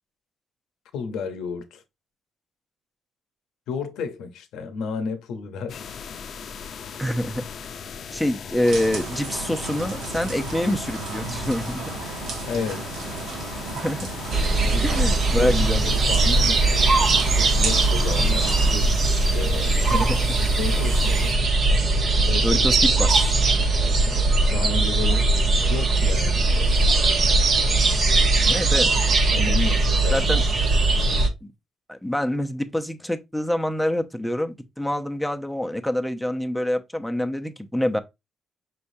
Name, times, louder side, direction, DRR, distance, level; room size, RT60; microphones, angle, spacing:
voice 1, 0.9-1.8 3.7-5.8 12.4-13.0 14.6-15.0 15.4-15.5 15.8-20.0 20.4-21.4 22.2-22.6 23.9-24.2 24.5-25.3 25.7-26.9 29.3-30.3, left 5 dB, 85° left, 0.8 m, -32 dB
sound 1, 5.7-21.3, left 6 dB, 60° left, 0.6 m, -38 dB
voice 2, 7.0-7.5 8.1-11.8 13.7-14.1 14.8-15.9 19.9-20.3 22.4-23.3 28.4-28.9 30.1-30.4 31.4-31.5 31.9-38.0, left 1 dB, 5° left, 0.7 m, -26 dB
sound 2, 8.6-18.7, right 4 dB, 80° right, 1.2 m, -33 dB
sound 3, 14.3-31.3, right 3 dB, 55° right, 1.0 m, -20 dB
5.6 x 3.3 x 2.7 m
cardioid pair, 90°, 0 cm